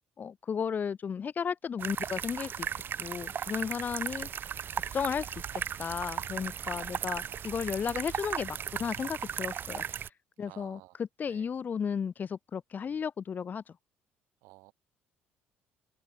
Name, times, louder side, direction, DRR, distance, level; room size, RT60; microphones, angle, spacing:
voice 1, 0.2-2.7 3.0-4.3 4.7-9.8 10.4-13.6, left 7 dB, 40° left, 0.6 m, -34 dB
sound 1, 1.8-10.1, right 8 dB, 50° right, 0.9 m, -36 dB
voice 2, 6.7-7.5 10.4-11.0 11.3-11.5 14.4-14.7, right 24 dB, 80° right, 5.0 m, -56 dB
open air
supercardioid pair, 75°, 5 cm